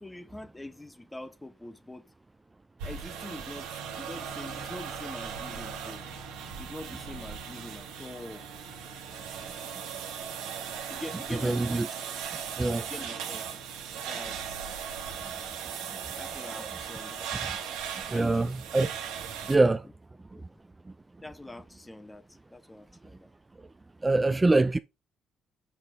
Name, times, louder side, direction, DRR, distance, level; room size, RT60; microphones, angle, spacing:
voice 1, 0.0-2.0 2.8-3.7 4.0-6.0 6.6-8.5 10.9-11.9 12.9-13.5 14.1-14.4 16.1-17.3 18.1-18.4 20.3-20.4 21.2-22.2 22.5-23.3, left 1 dB, 15° left, 1.1 m, -43 dB
sound 1, 2.8-19.6, right 7 dB, 85° right, 1.3 m, -38 dB
voice 2, 11.4-11.9 12.6-12.8 16.6-16.7 18.1-18.9 19.5-19.8 24.0-24.8, right 2 dB, 25° right, 0.5 m, -24 dB
6.2 x 6.0 x 3.5 m
supercardioid pair, 55°, 0 cm